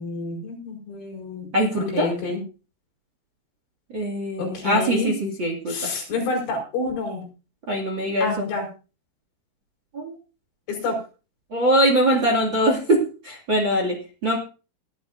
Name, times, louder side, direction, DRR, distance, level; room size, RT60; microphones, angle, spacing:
voice 1, 0.0-1.5 1.8-2.4 4.4-5.1 5.7-7.3 8.2-8.7 10.7-11.0, left 3 dB, 75° left, 1 dB, 7.3 m, -28 dB
voice 2, 1.5-2.1 3.9-6.0 7.7-8.5 9.9-10.1 11.5-14.4, right 1 dB, 35° right, 1 dB, 2.1 m, -22 dB
20.5 x 11.5 x 2.6 m, 0.34 s
omnidirectional pair, 5.7 m